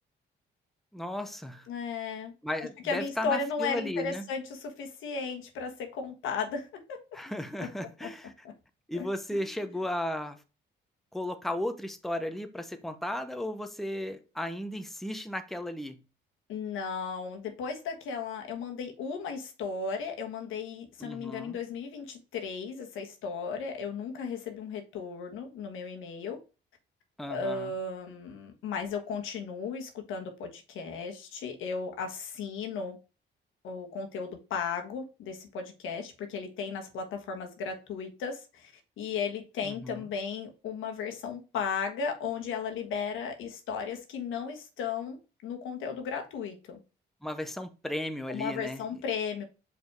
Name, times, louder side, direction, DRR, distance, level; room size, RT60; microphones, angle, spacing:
voice 1, 0.9-1.7 2.4-4.3 7.1-8.3 8.9-10.4 11.1-16.0 21.0-21.6 27.2-27.7 39.6-40.0 47.2-48.8, left 1 dB, ahead, 0.8 m, -35 dB
voice 2, 1.7-2.3 2.8-7.0 7.6-7.7 8.0-8.1 8.4-8.5 8.9-9.5 16.5-26.4 27.3-33.0 33.6-46.8 48.3-49.4, left 5 dB, 85° left, 1.5 m, -35 dB
5.1 x 4.1 x 4.7 m
cardioid pair, 90°, 20 cm